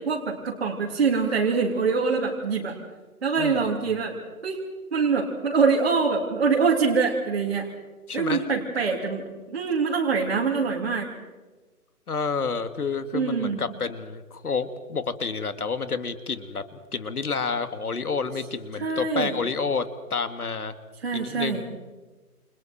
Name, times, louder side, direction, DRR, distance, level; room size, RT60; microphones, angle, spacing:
voice 1, 0.0-2.8 3.2-4.2 4.4-4.6 4.9-7.7 8.1-11.1 13.1-13.6 18.8-19.4 21.0-21.7, right 5 dB, 45° right, -3 dB, 3.7 m, -24 dB
voice 2, 8.1-8.4 12.1-20.7 21.1-21.7, left 5 dB, 70° left, 10 dB, 2.6 m, -29 dB
30.0 x 29.0 x 4.5 m, 1.3 s
hypercardioid pair, 170°, 46 cm